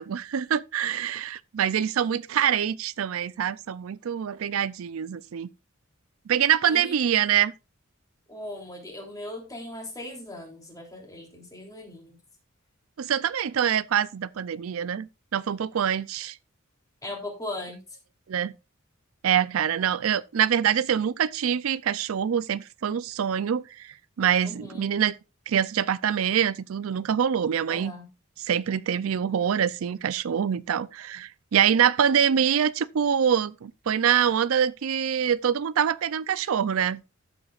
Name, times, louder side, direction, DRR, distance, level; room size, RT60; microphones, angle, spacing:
voice 1, 0.0-5.5 6.3-7.5 13.0-16.4 18.3-18.5 19.2-25.2 25.5-27.9 28.4-37.0, right 8 dB, 85° right, 0.4 m, -25 dB
voice 2, 8.3-12.2 17.0-17.8 24.4-24.9 27.7-28.1, left 1 dB, 15° left, 3.2 m, -38 dB
13.0 x 7.6 x 2.4 m
head